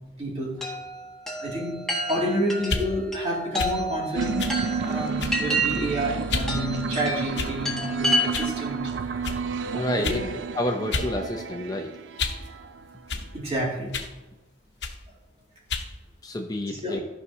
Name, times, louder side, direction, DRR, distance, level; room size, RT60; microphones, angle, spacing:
voice 1, 0.2-0.7 1.4-1.7 2.1-9.2 9.7-10.3 12.6-12.7 13.1-14.1 16.7-17.0, equal, 35° right, -4 dB, 2.4 m, -30 dB
Chime, 0.6-8.7, equal, 5° left, 1.4 m, -30 dB
sound 1, 2.6-2.9 3.6-3.8 4.4-4.6 5.2-5.5 6.3-6.5 7.3-7.7 8.3-8.5 9.2-9.4 10.0-10.2 10.9-11.1 11.5-12.5 13.1-13.3 13.9-14.1 14.8-15.0 15.7-15.9, left 4 dB, 75° left, 0.9 m, -30 dB
sound 2, 4.2-13.2, right 5 dB, 85° right, 0.4 m, -31 dB
voice 2, 9.7-10.2 10.5-11.9 16.2-17.0, left 1 dB, 20° left, 4 dB, 0.5 m, -29 dB
13.5 x 5.5 x 2.8 m, 1.0 s
head